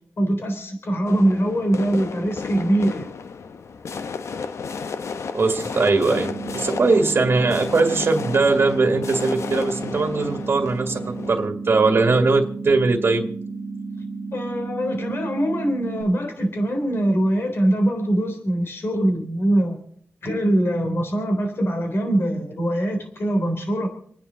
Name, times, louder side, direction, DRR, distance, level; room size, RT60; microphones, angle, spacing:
voice 1, 0.2-3.1 14.3-19.8 20.2-23.9, right 1 dB, 55° left, 4 dB, 3.7 m, -22 dB
sound 1, 1.1-11.5, left 5 dB, 80° left, 0.8 m, -33 dB
voice 2, 5.3-13.3, right 3 dB, 55° right, 2 dB, 2.0 m, -20 dB
sound 2, 6.0-16.0, right 3 dB, 40° left, 2.4 m, -33 dB
28.5 x 9.8 x 4.0 m, 0.62 s
wide cardioid pair, 105°, 5 cm